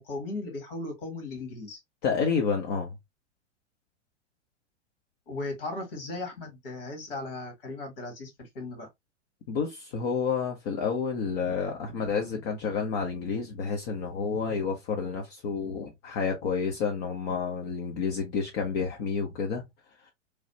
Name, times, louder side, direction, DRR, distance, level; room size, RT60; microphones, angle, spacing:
voice 1, 0.0-1.8 5.3-8.9, left 2 dB, 50° left, 1.7 m, -37 dB
voice 2, 2.0-2.9 9.5-19.6, left 5 dB, 35° left, 0.7 m, -29 dB
3.2 x 2.4 x 2.8 m
figure-of-eight pair, 100°, 36 cm